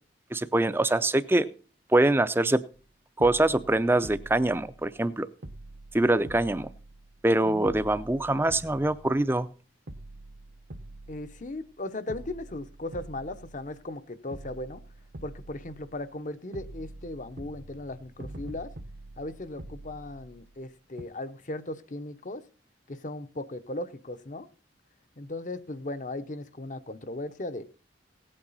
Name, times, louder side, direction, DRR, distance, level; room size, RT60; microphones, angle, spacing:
voice 1, 0.3-1.5 1.9-2.6 3.2-5.3 5.9-6.7 7.2-9.5, right 2 dB, 15° right, 14 dB, 0.5 m, -24 dB
sound 1, 2.7-2.9 3.2-5.1 5.4-7.3 7.6-9.5 9.9-11.8 12.1-14.0 14.3-16.2 16.5-20.7 21.0-21.1, right 1 dB, 65° right, 0.9 m, -46 dB
voice 2, 7.4-7.8 11.1-14.8 15.2-18.7 19.2-22.4 22.9-24.5 25.2-27.6, left 2 dB, 45° left, 12 dB, 0.8 m, -37 dB
17.5 x 8.8 x 4.1 m, 0.38 s
head